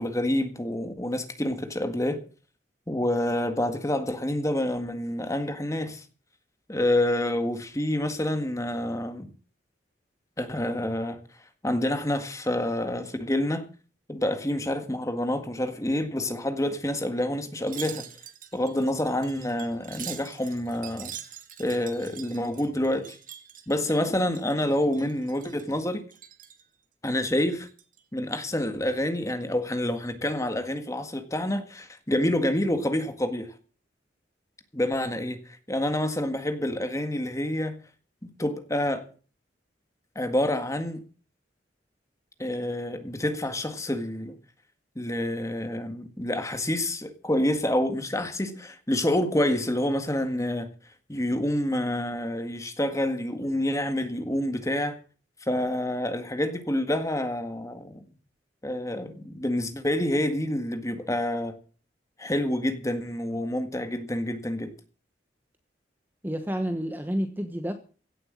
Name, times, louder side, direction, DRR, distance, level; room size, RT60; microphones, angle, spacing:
voice 1, 0.0-2.2 2.9-6.1 6.7-9.3 10.4-11.2 11.6-13.7 14.1-18.1 18.5-21.1 21.6-23.2 23.7-26.0 27.0-27.7 28.1-33.6 34.7-37.8 38.2-39.1 40.2-41.0 42.4-44.4 45.0-50.7 51.1-55.0 55.5-58.0 58.6-61.6 62.2-64.7, left 1 dB, 15° left, 1.7 m, -28 dB
Wind chime, 17.6-24.7 24.9-25.7 26.1-26.6 27.1-28.0 28.4-28.6, right 10 dB, 45° right, 1.7 m, -44 dB
voice 2, 66.2-67.7, equal, 10° right, 1.1 m, -29 dB
16.5 x 7.9 x 7.5 m
head